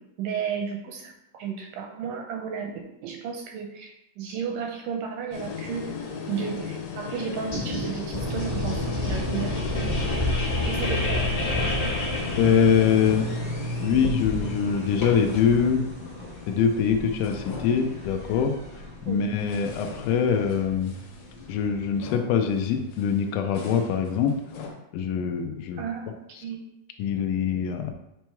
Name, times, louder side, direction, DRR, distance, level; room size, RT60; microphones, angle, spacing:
voice 1, 0.0-5.9 6.3-9.5 9.9-10.0 10.7-11.6 19.1-19.2 25.8-26.2 26.4-26.6, right 7 dB, 80° right, 2 dB, 2.0 m, -33 dB
sound 1, 5.3-16.9 17.2-18.5 19.1-24.7, left 6 dB, 70° left, 2.3 m, -38 dB
sound 2, 7.5-13.1, left 1 dB, 25° left, 0.7 m, -30 dB
sound 3, 8.1-22.1, left 1 dB, 45° left, 1.0 m, -33 dB
voice 2, 12.4-13.3 13.8-15.8 16.5-18.5 19.1-20.9 21.5-24.4 24.9-25.8 27.0-27.9, left 7 dB, 90° left, 5 dB, 1.8 m, -23 dB
7.6 x 3.1 x 4.5 m, 0.86 s
omnidirectional pair, 4.3 m